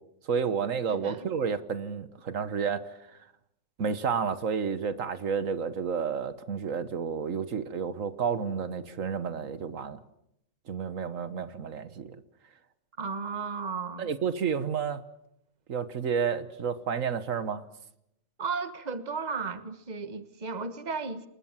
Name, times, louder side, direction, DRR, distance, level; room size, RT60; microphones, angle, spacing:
voice 1, 0.3-2.8 3.8-10.0 10.7-12.2 14.0-15.0 15.7-17.6, right 6 dB, 85° right, 1.7 m, -30 dB
voice 2, 0.9-1.3 13.0-14.1 18.4-21.3, right 4 dB, 35° right, 1.4 m, -34 dB
28.0 x 21.0 x 7.5 m
omnidirectional pair, 1.3 m